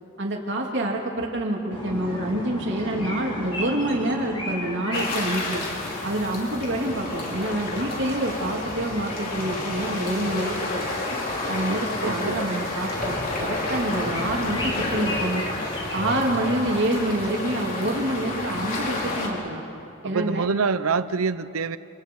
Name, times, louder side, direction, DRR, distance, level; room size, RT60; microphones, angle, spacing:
voice 1, 0.2-5.6 6.0-10.8 11.5-15.4 15.9-19.6 20.0-20.5, right 1 dB, 55° right, 0 dB, 2.9 m, -27 dB
sound 1, 1.7-19.1, left 1 dB, 25° left, 4.1 m, -38 dB
sound 2, 4.9-19.3, left 2 dB, 45° left, 4.4 m, -30 dB
voice 2, 12.0-12.4 20.0-21.8, right 5 dB, 80° right, 14 dB, 0.7 m, -25 dB
29.5 x 28.0 x 4.8 m, 3.0 s
head